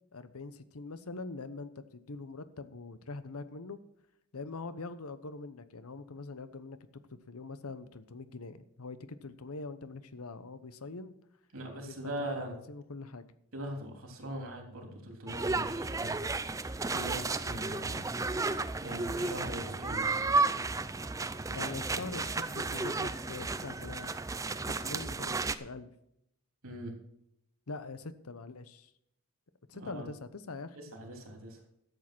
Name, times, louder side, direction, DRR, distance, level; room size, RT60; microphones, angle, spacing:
voice 1, 0.1-3.8 4.3-11.1 11.7-13.3 21.5-24.1 24.4-25.9 27.7-28.9 29.7-30.8, left 3 dB, 85° left, 13 dB, 0.9 m, -43 dB
voice 2, 11.5-12.5 13.5-16.2 16.8-18.0 18.8-20.1 21.6-21.7 26.6-26.9 29.7-30.1 30.7-31.6, right 1 dB, 75° right, 2 dB, 3.2 m, -41 dB
sound 1, 15.3-25.5, right 3 dB, 15° right, 0.4 m, -33 dB
13.0 x 7.5 x 6.1 m, 0.79 s
head